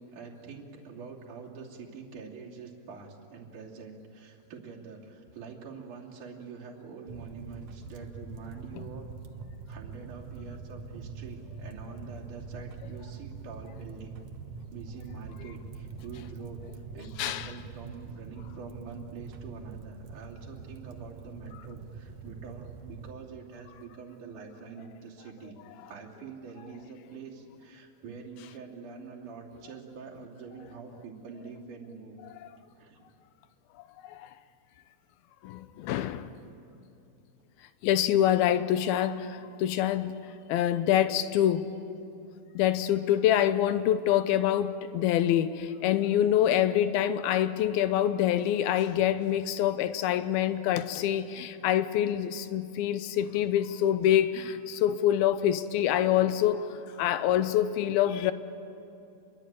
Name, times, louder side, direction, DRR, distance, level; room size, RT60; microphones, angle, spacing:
voice 1, 0.0-9.1 9.7-14.2 14.7-25.6 25.8-32.2 32.7-33.1 51.6-51.8, right 5 dB, 50° right, -2 dB, 4.2 m, -45 dB
sound 1, 7.1-23.1, right 5 dB, 80° right, 1.4 m, -44 dB
voice 2, 17.2-17.5 34.0-34.3 35.4-36.3 37.8-40.1 40.5-41.7 42.5-58.3, left 11 dB, 75° left, 12 dB, 2.6 m, -26 dB
28.5 x 22.5 x 9.0 m, 2.7 s
omnidirectional pair, 4.7 m